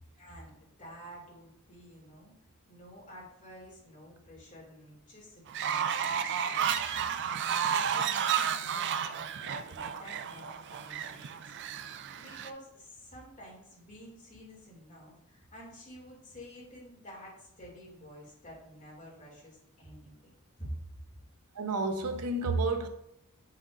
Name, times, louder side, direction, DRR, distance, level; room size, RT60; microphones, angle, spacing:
voice 1, 0.1-2.3 2.7-11.9 12.2-20.3 20.6-20.7, equal, 35° left, 2.6 m, -50 dB
Fowl, 5.5-12.5, right 8 dB, 50° right, 0.4 m, -32 dB
voice 2, 21.6-22.9, right 3 dB, 90° right, 0.7 m, -30 dB
7.2 x 5.8 x 2.6 m
head